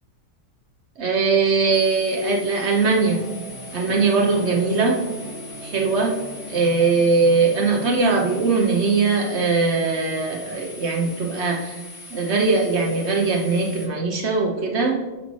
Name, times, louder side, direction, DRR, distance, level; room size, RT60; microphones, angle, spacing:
voice 1, 1.0-3.2 3.7-5.0 5.6-6.1 6.5-11.8 12.1-15.0, right 4 dB, 60° right, 1 dB, 0.7 m, -20 dB
sound 1, 1.7-13.9, left 2 dB, 70° left, 2.7 m, -42 dB
sound 2, 2.9-8.3, equal, 30° right, 2.6 m, -39 dB
12.0 x 4.1 x 3.1 m, 1.2 s
omnidirectional pair, 2.2 m